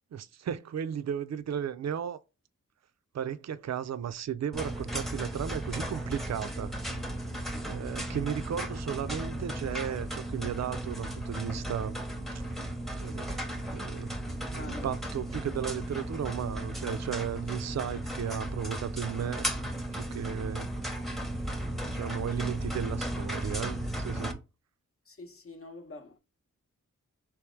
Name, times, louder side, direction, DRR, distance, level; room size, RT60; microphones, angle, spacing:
voice 1, 0.1-2.2 3.1-6.7 7.7-12.0 12.3-12.5 13.0-13.4 13.7-14.1 14.5-19.5 19.9-20.7 21.8-24.4, right 8 dB, 55° right, 0.4 m, -35 dB
sound 1, 4.5-24.3, right 1 dB, ahead, 0.7 m, -35 dB
voice 2, 7.5-7.9 14.5-14.9 25.1-26.2, left 3 dB, 45° left, 0.8 m, -46 dB
3.4 x 3.0 x 3.1 m
cardioid pair, 55°, 31 cm